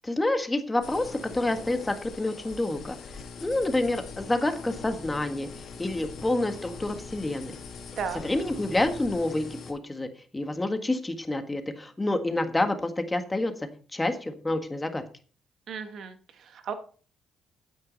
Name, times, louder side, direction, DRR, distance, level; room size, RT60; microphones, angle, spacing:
voice 1, 0.0-3.0 3.4-5.5 5.8-7.6 8.2-13.5 13.9-15.0, left 2 dB, 15° left, 7 dB, 1.6 m, -28 dB
sound 1, 0.8-9.7, left 5 dB, 65° left, 2.5 m, -42 dB
voice 2, 15.7-16.7, right 6 dB, 65° right, 8 dB, 1.6 m, -35 dB
9.5 x 8.6 x 4.1 m, 0.39 s
cardioid pair, 90°, 0 cm